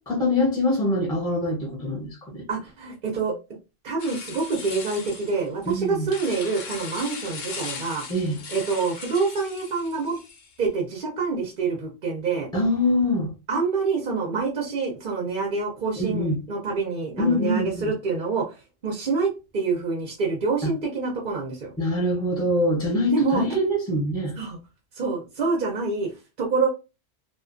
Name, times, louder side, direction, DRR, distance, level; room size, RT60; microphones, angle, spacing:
voice 1, 0.0-2.5 5.7-6.1 8.1-8.4 12.5-13.3 16.0-16.4 17.2-17.9 20.6-20.7 21.8-24.4, left 1 dB, 5° left, 0.6 m, -24 dB
voice 2, 2.5-3.4 3.8-8.0 8.5-10.2 10.6-12.5 13.5-18.6 18.8-21.7 23.1-23.6 24.4-24.6 24.9-26.7, right 4 dB, 50° right, 0.7 m, -26 dB
sound 1, 4.0-10.6, left 5 dB, 55° left, 0.6 m, -38 dB
2.4 x 2.3 x 2.5 m
omnidirectional pair, 1.2 m